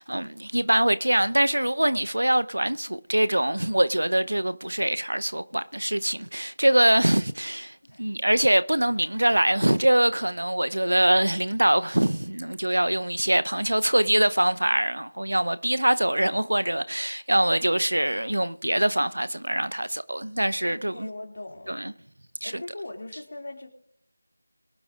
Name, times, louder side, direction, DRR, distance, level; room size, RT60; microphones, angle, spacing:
voice 1, 0.0-21.1 21.7-21.9 22.4-22.5, right 1 dB, 80° right, 0.8 m, -23 dB
voice 2, 20.7-21.9 22.4-23.7, left 2 dB, 45° left, 2.6 m, -40 dB
23.0 x 11.5 x 2.5 m
figure-of-eight pair, 170°, 0 cm